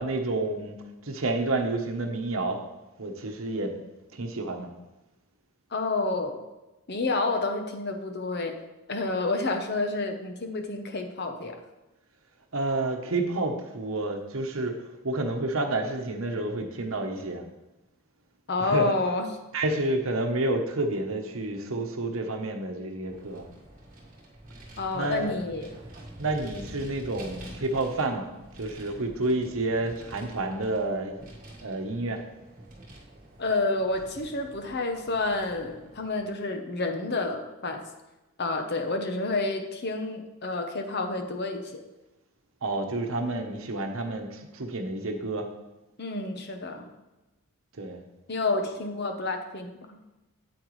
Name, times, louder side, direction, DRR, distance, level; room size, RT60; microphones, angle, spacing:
voice 1, 0.0-0.8 1.0-2.6 3.0-3.7 4.1-4.7 12.5-17.4 18.6-18.9 19.5-23.5 24.9-25.4 26.2-28.3 28.6-31.1 31.6-32.2 42.6-45.5 47.8-48.0, right 2 dB, 70° right, 4 dB, 1.0 m, -29 dB
voice 2, 5.7-6.4 6.9-8.5 8.9-11.6 18.5-19.3 24.8-25.7 33.4-37.8 38.4-41.8 46.0-46.9 48.3-50.0, left 3 dB, 50° left, 5 dB, 0.9 m, -29 dB
Vehicle, 23.1-36.3, right 1 dB, 40° right, 1.7 m, -47 dB
8.9 x 8.1 x 3.2 m, 1.0 s
head